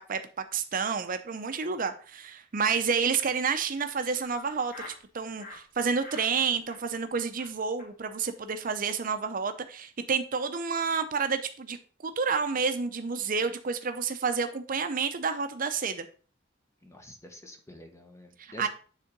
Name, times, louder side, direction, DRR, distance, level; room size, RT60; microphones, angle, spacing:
voice 1, 0.5-11.8 12.0-16.1 18.4-18.7, right 5 dB, 45° right, 0.6 m, -29 dB
Laughter, 3.2-5.0 5.4-5.6 6.0-6.3 6.6-7.1 7.4-7.5 7.8-7.9 8.2-8.3 8.5-8.7 8.9-9.3, left 2 dB, 45° left, 2.3 m, -48 dB
voice 2, 16.8-18.7, left 1 dB, 15° left, 1.2 m, -48 dB
9.7 x 3.7 x 5.2 m
head